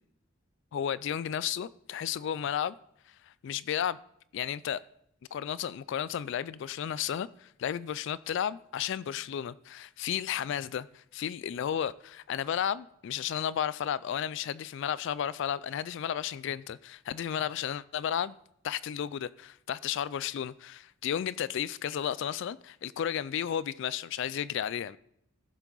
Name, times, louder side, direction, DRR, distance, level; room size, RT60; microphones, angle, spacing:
voice 1, 0.7-2.8 3.2-4.0 4.3-4.8 5.3-18.3 18.6-25.0, left 9 dB, 65° left, 19 dB, 0.3 m, -33 dB
15.0 x 7.3 x 3.9 m, 0.73 s
head